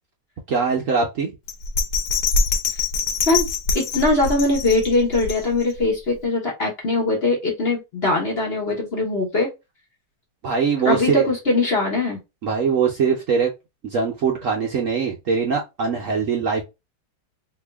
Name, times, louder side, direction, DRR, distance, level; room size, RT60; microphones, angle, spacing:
voice 1, 0.5-1.3 10.4-11.3 12.4-13.5 13.8-16.6, right 5 dB, 60° right, 0.9 m, -22 dB
Bell, 1.5-5.8 6.2-6.3, left 4 dB, 70° left, 1.4 m, -24 dB
voice 2, 3.7-9.5 10.8-12.2, left 2 dB, 40° left, 1.0 m, -21 dB
3.0 x 2.7 x 3.4 m
omnidirectional pair, 1.9 m